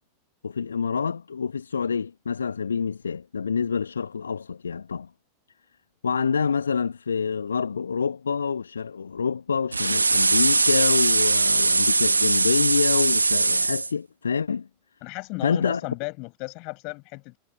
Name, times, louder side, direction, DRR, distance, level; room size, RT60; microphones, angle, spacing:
voice 1, 0.4-5.1 6.0-14.7 15.4-15.8, left 6 dB, 70° left, 1.6 m, -27 dB
sound 1, 9.7-13.9, right 3 dB, 80° right, 1.6 m, -21 dB
voice 2, 15.0-17.4, left 30 dB, 45° left, 7.2 m, -34 dB
figure-of-eight pair, 90°, 0 cm